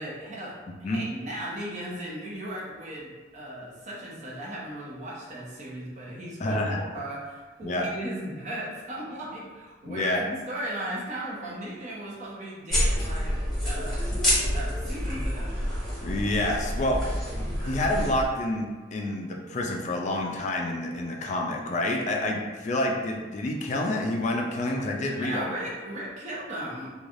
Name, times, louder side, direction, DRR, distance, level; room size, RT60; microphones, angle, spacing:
voice 1, 0.0-14.1 14.5-15.6 25.1-26.9, right 1 dB, 45° right, -5 dB, 0.7 m, -37 dB
voice 2, 6.4-6.8 7.6-7.9 9.8-10.2 16.0-17.0 17.6-25.5, left 1 dB, 40° left, 1 dB, 0.3 m, -28 dB
sound 1, 12.7-18.3, equal, ahead, 1.0 m, -28 dB
3.1 x 2.3 x 2.5 m, 1.4 s
head